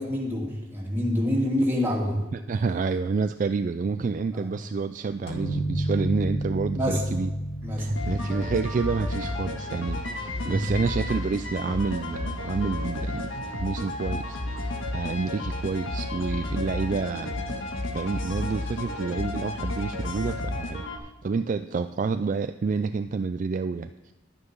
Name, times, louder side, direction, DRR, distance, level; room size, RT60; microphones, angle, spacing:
voice 1, 0.0-2.2 4.3-4.5 6.7-7.0 7.6-8.0 10.4-10.6, left 1 dB, 10° right, -4 dB, 2.8 m, -27 dB
voice 2, 2.3-7.3 7.8-17.6 17.9-20.9 21.2-24.1, right 4 dB, 40° right, 9 dB, 0.3 m, -29 dB
sound 1, 5.3-10.8, right 1 dB, 55° left, 2.0 m, -31 dB
sound 2, 8.0-21.0, left 2 dB, 80° left, 1.5 m, -32 dB
11.0 x 9.8 x 5.4 m, 1.1 s
head